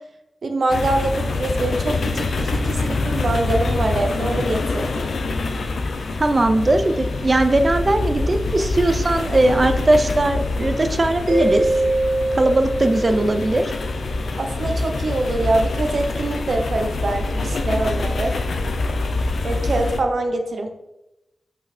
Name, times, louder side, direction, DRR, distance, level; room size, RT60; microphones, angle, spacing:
voice 1, 0.4-5.1 14.4-18.4 19.4-20.7, right 2 dB, 55° right, 5 dB, 0.9 m, -24 dB
sound 1, 0.7-20.0, left 3 dB, 75° left, 0.7 m, -25 dB
voice 2, 6.2-11.7 12.3-13.7, right 2 dB, 30° right, 8 dB, 0.6 m, -19 dB
Mallet percussion, 11.3-13.8, right 1 dB, 80° right, 1.3 m, -23 dB
5.6 x 5.5 x 4.2 m, 0.93 s
wide cardioid pair, 150°, 0 cm